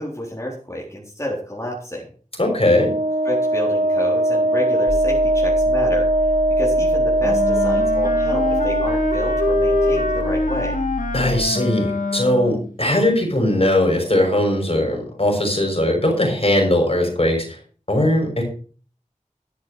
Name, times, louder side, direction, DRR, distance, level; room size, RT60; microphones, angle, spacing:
voice 1, 0.0-2.1 3.2-6.3 6.6-10.8, equal, 20° left, -4 dB, 4.0 m, -30 dB
voice 2, 2.4-2.9 11.1-17.5 17.9-18.4, left 1 dB, 45° left, 2 dB, 6.1 m, -19 dB
Wind instrument woodwind instrument, 2.7-10.5, right 1 dB, 65° right, 1.0 m, -20 dB
sound 1, 4.9-11.4, left 1 dB, 65° left, 1.9 m, -30 dB
Wind instrument woodwind instrument 2, 7.2-12.7, left 2 dB, 85° left, 1.7 m, -25 dB
12.0 x 10.5 x 4.9 m, 0.41 s
wide cardioid pair, 45°, 13 cm